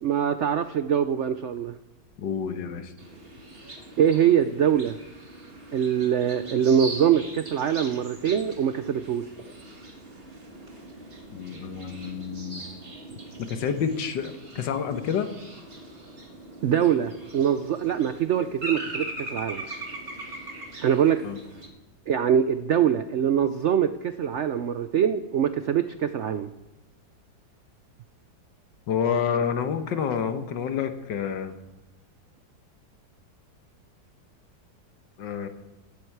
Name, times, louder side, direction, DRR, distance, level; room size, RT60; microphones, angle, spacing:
voice 1, 0.0-1.8 4.0-5.0 5.7-9.2 16.6-19.7 20.8-21.2 22.1-26.5, right 9 dB, 80° right, 11 dB, 0.6 m, -23 dB
voice 2, 2.2-2.9 11.3-12.6 13.4-15.3 21.2-21.4 28.9-31.5 35.2-35.5, left 7 dB, 75° left, 8 dB, 1.8 m, -28 dB
sound 1, 3.0-21.7, right 1 dB, 30° right, 2.2 m, -41 dB
16.0 x 12.0 x 4.7 m, 0.99 s
omnidirectional pair, 1.9 m